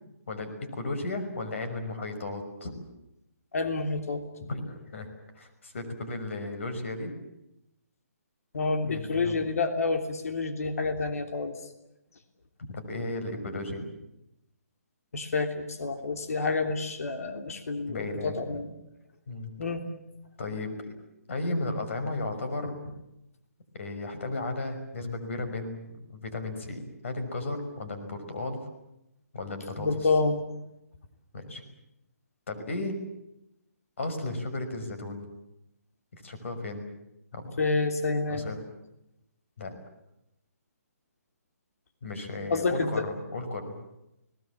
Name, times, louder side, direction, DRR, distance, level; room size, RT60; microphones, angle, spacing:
voice 1, 0.3-2.7 4.4-5.1 5.4-7.1 8.8-9.4 12.7-13.8 17.9-18.6 19.3-19.5 20.4-21.0 21.3-22.9 23.7-25.8 26.1-28.6 29.3-30.1 31.3-31.6 32.5-33.0 34.0-35.3 36.1-36.9 37.3-37.6 38.3-38.6 39.6-39.7 42.0-43.7, left 2 dB, 55° left, 8 dB, 5.8 m, -34 dB
voice 2, 3.5-4.2 8.5-11.5 15.1-18.7 19.6-19.9 29.8-30.5 37.6-38.4 42.5-43.0, left 3 dB, 70° left, 6 dB, 3.1 m, -28 dB
30.0 x 19.5 x 7.4 m, 0.86 s
hypercardioid pair, 170°, 8 cm